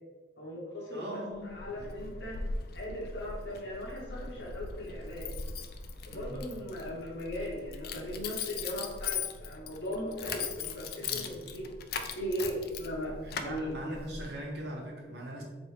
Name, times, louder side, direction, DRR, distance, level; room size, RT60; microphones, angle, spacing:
voice 1, 0.4-2.4 2.7-5.3 6.1-11.7 12.1-13.2 13.4-13.7, equal, 70° left, -5 dB, 0.9 m, -38 dB
voice 2, 0.9-1.9 6.1-6.4 11.0-11.4 13.2-15.4, right 1 dB, 60° right, -1 dB, 0.9 m, -41 dB
Keys jangling, 1.3-14.4, left 5 dB, 55° left, 0.3 m, -40 dB
4.1 x 3.0 x 3.2 m, 1.4 s
head